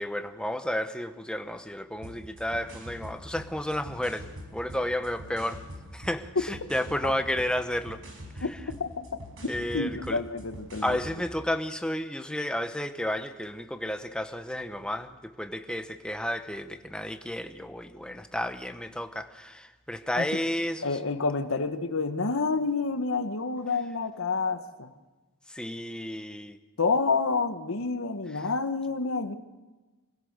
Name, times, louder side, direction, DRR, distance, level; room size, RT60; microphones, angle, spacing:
voice 1, 0.0-5.6 5.9-8.0 8.4-8.5 9.5-10.2 10.8-21.0 25.5-26.6, left 1 dB, 5° left, 8 dB, 1.0 m, -32 dB
sound 1, 1.9-11.2, equal, 60° right, 5.4 m, -44 dB
voice 2, 8.4-9.2 9.7-11.0 20.2-20.3 20.8-24.9 26.8-29.4, left 4 dB, 65° left, 9 dB, 1.2 m, -29 dB
26.5 x 16.5 x 6.7 m, 1.2 s
head